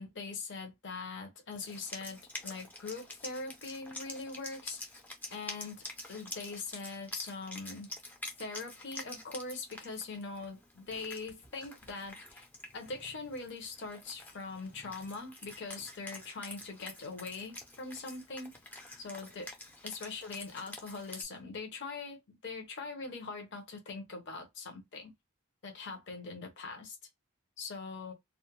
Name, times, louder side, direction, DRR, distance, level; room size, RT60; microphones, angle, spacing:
voice 1, 0.0-4.8 5.3-7.9 8.4-12.5 12.7-18.5 19.0-19.5 19.8-25.1 25.6-27.0 27.6-28.1, left 4 dB, 50° left, 0.7 m, -42 dB
Wind instrument woodwind instrument, 1.5-21.2, left 1 dB, 10° left, 0.4 m, -47 dB
2.4 x 2.1 x 2.9 m
head